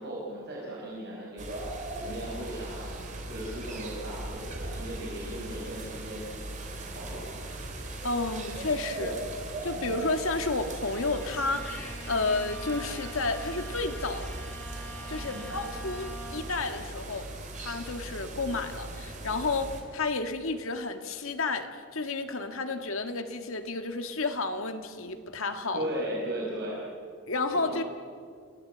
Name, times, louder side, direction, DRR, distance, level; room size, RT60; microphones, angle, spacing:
voice 1, 0.0-1.6 2.0-6.3 6.8-7.4 7.8-8.0 9.0-9.1 9.7-9.9 15.3-15.5 25.7-26.8 27.5-27.8, right 1 dB, 50° right, -4 dB, 5.5 m, -37 dB
sound 1, 1.4-19.8, right 2 dB, 35° right, 3.3 m, -39 dB
voice 2, 8.0-9.1 9.6-14.4 15.1-17.3 17.6-25.9 27.3-27.8, left 3 dB, 70° left, 7 dB, 1.7 m, -31 dB
Bowed string instrument, 10.6-16.7, equal, 10° left, 5.9 m, -45 dB
28.5 x 17.0 x 8.0 m, 2.2 s
head